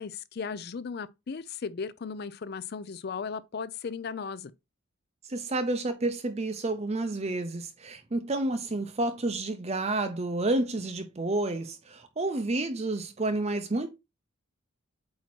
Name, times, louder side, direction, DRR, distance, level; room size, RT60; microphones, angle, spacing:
voice 1, 0.0-4.5, left 5 dB, 45° left, 0.4 m, -36 dB
voice 2, 5.3-13.9, right 2 dB, 30° right, 0.6 m, -30 dB
8.4 x 2.9 x 4.3 m
head